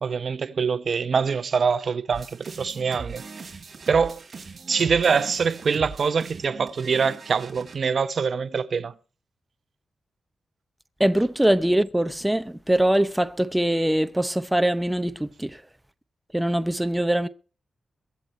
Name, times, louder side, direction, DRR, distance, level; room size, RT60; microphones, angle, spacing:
voice 1, 0.0-3.2 3.9-4.2 4.7-8.9, right 5 dB, 50° right, 0.9 m, -24 dB
sound 1, 2.1-7.7, right 4 dB, 35° right, 4.2 m, -40 dB
voice 2, 11.0-15.6 16.3-17.3, right 1 dB, 5° right, 0.7 m, -22 dB
23.0 x 8.0 x 4.2 m
wide cardioid pair, 150°, 0 cm